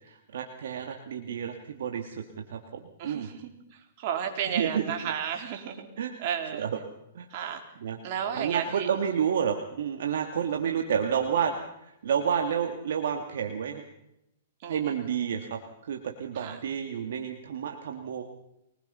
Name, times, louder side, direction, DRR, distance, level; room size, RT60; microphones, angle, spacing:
voice 1, 0.0-2.2 2.5-3.3 4.5-5.1 6.0-6.3 6.6-6.7 7.1-7.3 7.8-8.0 8.3-13.8 14.7-15.6 15.9-18.2, right 8 dB, 75° right, 3 dB, 2.3 m, -30 dB
voice 2, 3.0-5.9 6.2-6.7 7.3-7.6 8.0-8.9 14.6-14.9 16.3-16.6, right 8 dB, 45° right, 3 dB, 4.1 m, -33 dB
23.5 x 20.5 x 5.7 m, 0.83 s
hypercardioid pair, 145°, 0 cm